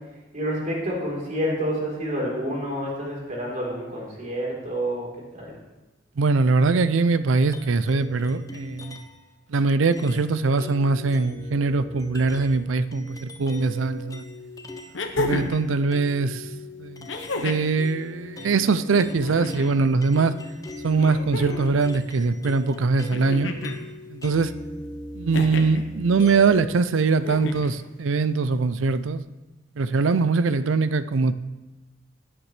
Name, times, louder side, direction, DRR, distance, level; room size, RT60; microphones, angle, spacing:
voice 1, 0.3-5.5, equal, 40° right, -3 dB, 3.8 m, -28 dB
voice 2, 6.2-9.0 9.5-14.2 15.2-16.4 16.8-17.1 17.4-20.3 20.8-23.5 24.1-24.5 25.1-29.2 29.8-31.3, right 4 dB, 85° right, 14 dB, 0.5 m, -22 dB
sound 1, 7.5-9.3 9.9-15.0 15.3-26.7, left 1 dB, 20° left, 0.9 m, -40 dB
sound 2, 13.9-14.0 14.9-15.7 17.1-17.7 19.0-19.7 21.0-21.8 23.1-23.8 25.3-25.8 27.2-27.8 29.1-29.2, left 2 dB, 70° left, 1.0 m, -31 dB
16.5 x 8.9 x 3.3 m, 1.1 s
head